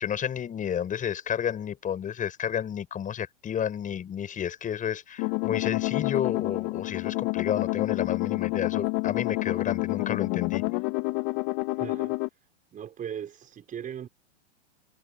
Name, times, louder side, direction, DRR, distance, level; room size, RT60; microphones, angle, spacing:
voice 1, 0.0-10.6, left 9 dB, 25° left, 6.7 m, -31 dB
sound 1, 5.2-12.3, left 27 dB, 45° left, 2.6 m, -28 dB
voice 2, 11.7-12.2 12.7-14.1, right 9 dB, 25° right, 6.1 m, -38 dB
hypercardioid pair, 125°, 34 cm